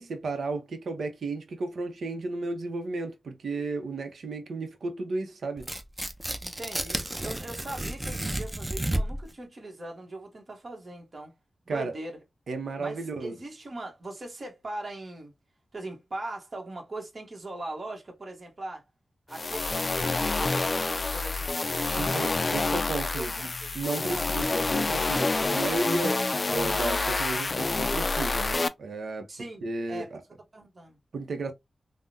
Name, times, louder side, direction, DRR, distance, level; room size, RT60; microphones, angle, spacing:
voice 1, 0.0-5.7 11.7-11.9 12.5-13.4 22.0-23.3 23.7-26.2 26.5-29.3 29.6-30.2 31.1-31.5, right 3 dB, 80° right, 0.6 m, -33 dB
Tearing, 5.6-9.3, right 1 dB, 15° right, 0.5 m, -32 dB
voice 2, 6.4-11.3 11.7-12.2 12.8-15.3 15.7-18.8 19.3-21.6 21.9-22.3 23.1-23.7 24.1-24.3 29.3-30.1 30.5-31.0, right 2 dB, 50° right, 1.1 m, -40 dB
sound 1, 19.3-28.7, left 3 dB, 45° left, 0.3 m, -28 dB
3.4 x 2.1 x 2.6 m
cardioid pair, 60°, 0 cm